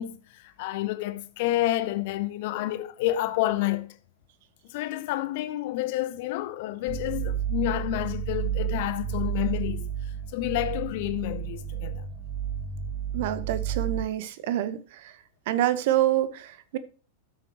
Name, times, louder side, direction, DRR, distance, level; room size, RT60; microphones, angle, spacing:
voice 1, 0.0-3.9 4.7-9.9 10.3-12.1, left 15 dB, 50° left, 0.9 m, -29 dB
sound 1, 6.9-14.0, right 8 dB, 20° right, 2.0 m, -31 dB
voice 2, 13.1-15.1 15.5-16.8, right 13 dB, 50° right, 1.0 m, -27 dB
13.0 x 7.5 x 3.0 m
figure-of-eight pair, 90°, 0 cm